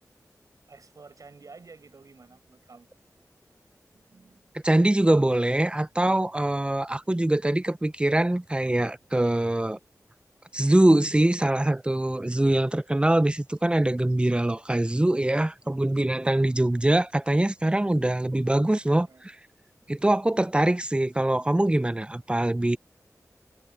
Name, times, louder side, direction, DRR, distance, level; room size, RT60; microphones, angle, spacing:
voice 1, 0.7-2.9 3.9-4.5 19.0-19.2, right 4 dB, 70° right, 5.5 m, -50 dB
voice 2, 4.6-9.8 10.5-19.1 19.9-22.8, right 1 dB, 15° right, 0.5 m, -23 dB
wide cardioid pair, 60°, 6 cm